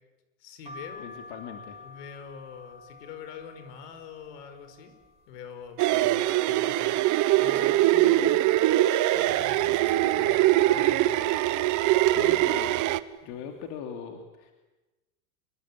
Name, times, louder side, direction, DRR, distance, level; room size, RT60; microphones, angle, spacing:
voice 1, 0.4-1.1 1.8-4.9 5.3-8.5 9.1-11.2, left 6 dB, 75° left, 10 dB, 5.3 m, -44 dB
sound 1, 0.7-6.3 6.8-7.6 8.0-8.1 8.2-9.4 9.8-10.2 11.0-11.3 12.1-12.3 12.6-12.8, left 3 dB, 15° right, 5.2 m, -49 dB
voice 2, 1.0-1.8 12.1-12.7 13.2-14.5, left 7 dB, 50° left, 4 dB, 3.1 m, -39 dB
sound 2, 5.8-13.0, right 15 dB, 40° right, 1.1 m, -22 dB
26.5 x 21.5 x 10.0 m, 1.1 s
supercardioid pair, 135°, 49 cm